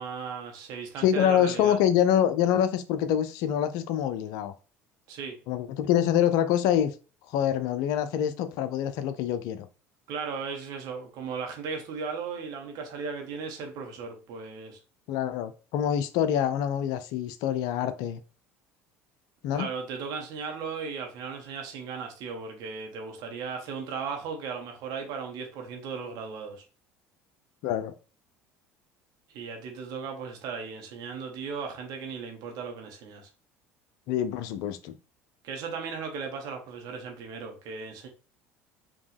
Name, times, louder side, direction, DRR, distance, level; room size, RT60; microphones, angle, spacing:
voice 1, 0.0-1.8 5.1-5.4 10.1-14.8 19.5-26.6 29.3-33.3 35.4-38.1, right 5 dB, 60° right, 1.4 m, -36 dB
voice 2, 1.0-4.5 5.5-6.9 7.3-9.7 15.1-18.2 19.4-19.7 27.6-27.9 34.1-34.9, left 10 dB, 60° left, 0.6 m, -25 dB
5.0 x 3.0 x 3.4 m
hypercardioid pair, 65°, 7 cm